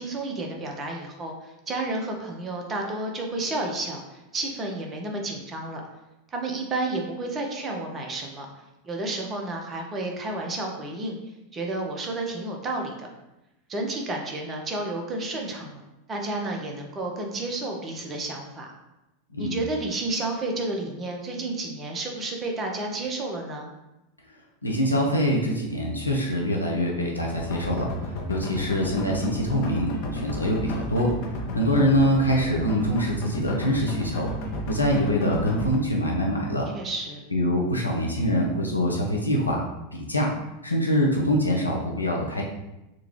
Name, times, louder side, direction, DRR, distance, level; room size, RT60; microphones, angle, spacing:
voice 1, 0.0-5.8 6.3-8.5 8.8-11.2 11.5-13.1 13.7-15.8 16.1-18.7 19.4-23.7 36.7-37.2, right 2 dB, 25° right, 1 dB, 0.7 m, -31 dB
voice 2, 24.6-27.9 28.3-31.1 31.5-34.3 34.7-36.7 37.3-39.6 39.9-40.3 40.6-42.4, equal, 90° left, -1 dB, 0.6 m, -24 dB
sound 1, 27.3-35.7, left 1 dB, 50° left, 0.7 m, -32 dB
3.7 x 2.3 x 3.0 m, 0.95 s
figure-of-eight pair, 85°, 0 cm